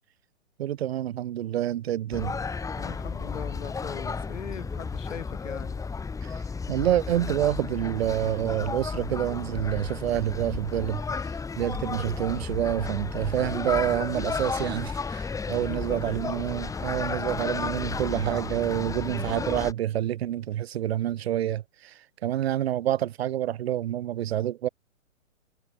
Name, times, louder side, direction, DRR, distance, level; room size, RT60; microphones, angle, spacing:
voice 1, 0.6-2.4 6.2-6.4 6.7-11.0 11.6-24.7, right 12 dB, 50° right, 8.0 m, -28 dB
sound 1, 2.1-19.7, left 4 dB, 10° left, 6.3 m, -33 dB
voice 2, 2.8-5.8 15.5-16.1, left 8 dB, 65° left, 4.2 m, -40 dB
hypercardioid pair, 135°, 40 cm